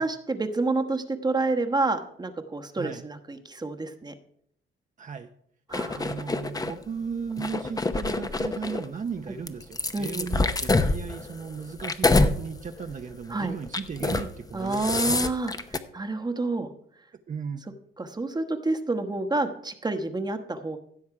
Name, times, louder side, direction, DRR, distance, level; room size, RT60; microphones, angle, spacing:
voice 1, 0.0-4.1 5.7-6.0 9.9-10.3 13.3-13.5 14.5-16.7 18.0-20.8, right 3 dB, 20° right, 6 dB, 1.2 m, -29 dB
voice 2, 2.7-3.0 5.0-5.3 5.9-15.1 17.3-17.6, right 6 dB, 40° right, 5 dB, 0.8 m, -36 dB
sound 1, 5.7-6.7 7.3-8.8 9.5-12.4 12.8-13.0 13.7-14.3 14.6-15.8, left 3 dB, 20° left, 0.8 m, -26 dB
16.0 x 7.1 x 4.8 m, 0.68 s
cardioid pair, 90°, 20 cm